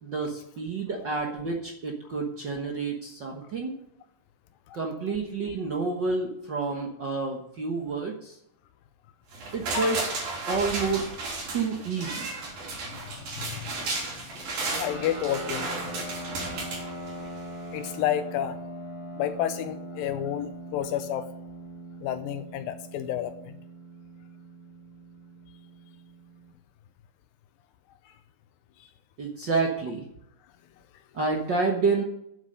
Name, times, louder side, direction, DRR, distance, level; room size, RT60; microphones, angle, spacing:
voice 1, 0.0-3.8 4.7-8.4 9.5-10.0 10.5-11.1 11.5-12.3 29.2-30.0 31.1-32.0, right 4 dB, 60° right, 0 dB, 1.1 m, -29 dB
sound 1, 9.3-17.5 17.9-18.0, right 3 dB, 85° right, 5.4 m, -34 dB
voice 2, 12.6-14.4 14.8-15.9 17.7-18.6 19.2-21.3 22.0-23.6 28.1-28.2 28.8-28.9, left 11 dB, 85° left, 10 dB, 2.4 m, -31 dB
sound 2, 14.7-26.5, right 1 dB, 30° right, 4.4 m, -41 dB
9.6 x 8.2 x 6.5 m, 0.76 s
omnidirectional pair, 4.0 m